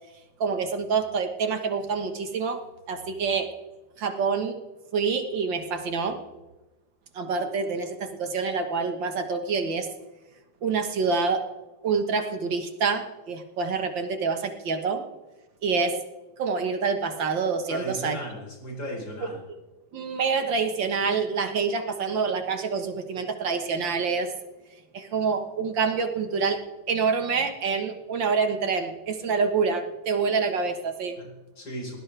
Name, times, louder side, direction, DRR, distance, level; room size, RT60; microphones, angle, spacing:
voice 1, 0.4-2.6 2.9-3.5 4.0-4.6 4.9-6.2 7.1-9.9 10.6-11.5 11.8-15.0 15.6-16.0 16.4-18.2 19.9-24.3 24.9-26.6 26.9-31.2, right 5 dB, 70° right, 6 dB, 2.2 m, -26 dB
voice 2, 17.7-19.4 31.2-32.0, equal, 65° left, -1 dB, 5.6 m, -36 dB
21.5 x 18.5 x 3.4 m, 1.1 s
omnidirectional pair, 2.2 m